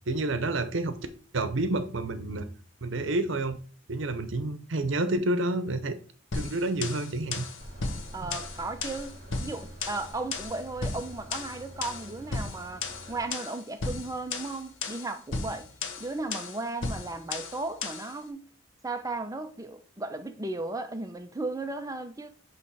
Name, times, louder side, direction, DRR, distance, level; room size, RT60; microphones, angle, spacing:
voice 1, 0.1-1.0 1.3-2.5 2.8-3.6 3.9-6.0 6.3-7.4 8.2-8.3, right 2 dB, 70° right, 0.8 m, -29 dB
sound 1, 6.3-18.1, left 4 dB, 75° left, 1.0 m, -36 dB
sound 2, 7.6-13.3, right 1 dB, 40° right, 1.6 m, -46 dB
voice 2, 8.1-15.7 16.0-18.5 18.8-22.3, right 2 dB, 15° right, 0.6 m, -35 dB
8.4 x 3.2 x 4.7 m
head